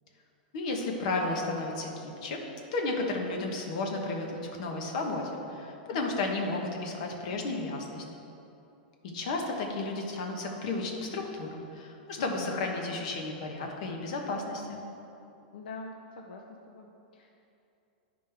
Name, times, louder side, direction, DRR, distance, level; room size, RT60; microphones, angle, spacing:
voice 1, 0.5-2.4 2.7-8.0 9.1-14.8, left 2 dB, 45° left, 1 dB, 1.0 m, -33 dB
voice 2, 12.2-12.7 15.5-17.3, left 3 dB, 70° left, 2 dB, 0.6 m, -44 dB
10.5 x 5.1 x 3.4 m, 2.8 s
supercardioid pair, 170°, 5 cm